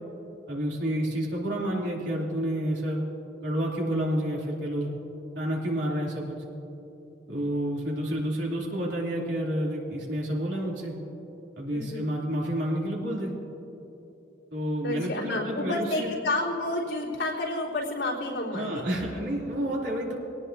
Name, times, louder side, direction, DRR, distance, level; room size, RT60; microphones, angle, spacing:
voice 1, 0.5-3.0 3.4-4.9 5.3-6.4 7.3-10.9 11.6-13.3 14.5-16.1 18.5-20.2, right 1 dB, 80° right, -3 dB, 3.2 m, -29 dB
voice 2, 11.7-12.1 14.8-18.9, left 2 dB, 75° left, -6 dB, 3.9 m, -30 dB
24.0 x 18.0 x 2.8 m, 3.0 s
head